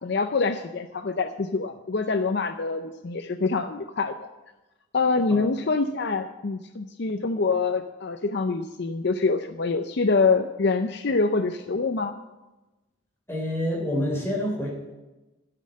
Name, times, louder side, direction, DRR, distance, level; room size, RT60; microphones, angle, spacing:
voice 1, 0.0-4.2 4.9-12.2, left 4 dB, 55° left, 8 dB, 0.5 m, -25 dB
voice 2, 13.3-14.9, left 1 dB, 10° left, -1 dB, 3.2 m, -27 dB
12.5 x 6.5 x 7.5 m, 1.1 s
head